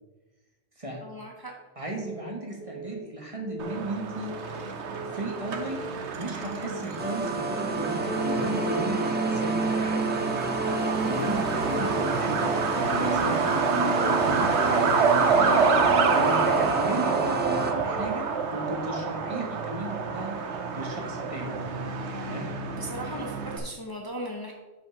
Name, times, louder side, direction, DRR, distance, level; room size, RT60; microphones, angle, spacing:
voice 1, 1.0-1.5 22.7-24.5, equal, 20° left, 0 dB, 1.0 m, -37 dB
voice 2, 1.7-4.3 5.0-10.2 11.0-18.3 18.5-20.3 20.7-21.6 22.2-22.4, right 1 dB, 30° right, 0 dB, 1.3 m, -35 dB
Keyboard (musical) / Alarm, 1.9-2.2 2.6-3.0 3.4-3.7 4.1-4.5 4.9-5.2 5.6-6.0 6.4-6.7 7.1-7.5 7.9-8.2 8.6-9.0 9.4-9.8 10.1-10.5 10.9-11.3 11.6-12.0 12.4-12.8 13.1-13.5 13.9-14.3 14.6-15.0 15.4-15.8 16.1-16.5 16.9-17.3 17.6-18.0, equal, 40° left, 2.6 m, -42 dB
Truck, 3.6-23.6, right 5 dB, 85° right, 1.1 m, -27 dB
sound 1, 7.0-17.7, right 2 dB, 15° right, 0.5 m, -30 dB
5.8 x 5.2 x 6.1 m, 1.2 s
omnidirectional pair, 1.1 m